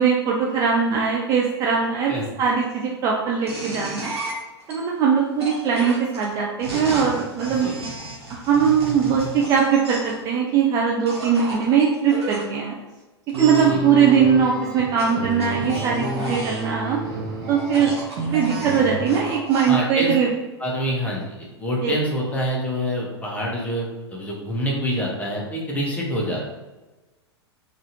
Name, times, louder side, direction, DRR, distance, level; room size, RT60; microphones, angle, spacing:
voice 1, 0.0-2.1 2.4-4.1 4.7-7.7 8.3-12.7 13.4-17.0 17.5-17.9 18.3-20.3 21.8-21.9, right 7 dB, 25° right, -2 dB, 0.3 m, -20 dB
sound 1, 3.5-4.7 5.4-10.2 11.1-12.4 13.3-13.7 15.0-16.7 17.6-19.8, right 2 dB, 70° right, 1.1 m, -33 dB
sound 2, 13.3-19.2, right 2 dB, 45° right, 0.7 m, -30 dB
voice 2, 19.7-20.1 20.6-26.5, equal, 10° left, -3 dB, 0.8 m, -26 dB
3.9 x 2.5 x 2.6 m, 1.1 s
figure-of-eight pair, 100°, 14 cm